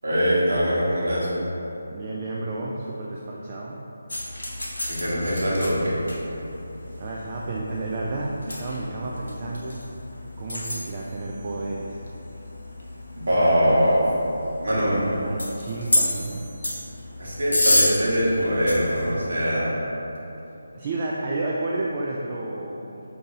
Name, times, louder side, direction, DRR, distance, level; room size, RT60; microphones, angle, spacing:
voice 1, 0.0-1.3 4.9-6.0 13.1-14.0 14.6-14.9 17.2-19.8, equal, 60° right, -8 dB, 1.4 m, -22 dB
voice 2, 1.9-3.8 7.0-9.9 10.4-12.0 14.7-16.4 20.7-23.1, right 2 dB, 30° right, -3 dB, 0.3 m, -31 dB
sound 1, 4.1-19.2, left 1 dB, 75° left, 0.7 m, -30 dB
5.1 x 2.8 x 2.8 m, 3.0 s
figure-of-eight pair, 155°, 0 cm